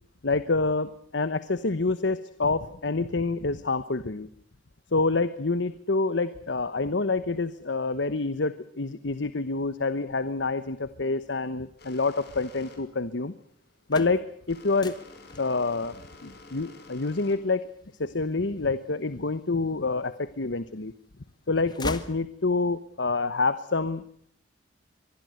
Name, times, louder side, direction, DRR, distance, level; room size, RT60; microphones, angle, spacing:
voice 1, 0.2-4.3 4.9-13.3 13.9-15.0 15.4-17.7 18.0-20.9 21.5-24.0, left 3 dB, 80° left, 13 dB, 1.1 m, -27 dB
sound 1, 11.8-18.7, left 3 dB, 60° left, 5.9 m, -50 dB
sound 2, 13.6-19.6 20.1-21.0 21.3-22.9, left 2 dB, 25° left, 1.8 m, -42 dB
24.5 x 20.5 x 7.9 m, 0.63 s
head